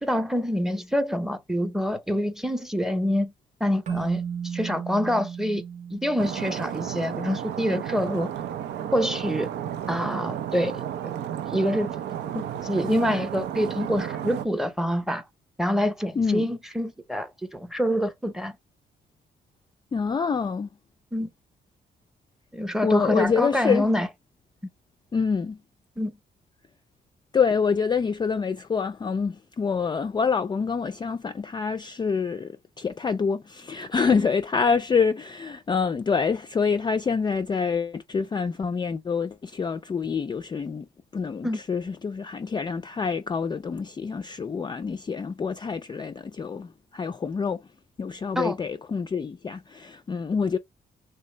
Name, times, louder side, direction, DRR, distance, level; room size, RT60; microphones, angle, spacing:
voice 1, 0.0-3.3 3.6-5.6 5.9-8.3 8.9-9.5 9.9-10.8 11.5-11.9 12.3-15.2 15.6-18.5 21.1-21.3 22.5-24.1 26.0-26.1 34.2-34.3 41.4-41.6 48.4-48.6, equal, ahead, 0.7 m, -26 dB
Keyboard (musical), 3.9-7.1, right 7 dB, 45° right, 0.7 m, -35 dB
Stream, 6.2-14.5, right 10 dB, 85° right, 0.5 m, -33 dB
voice 2, 16.2-16.5 19.9-20.7 22.8-23.9 25.1-25.6 27.3-40.9 41.1-47.6 48.0-50.6, left 5 dB, 25° left, 0.3 m, -26 dB
3.3 x 2.7 x 3.2 m
cardioid pair, 85°, 17 cm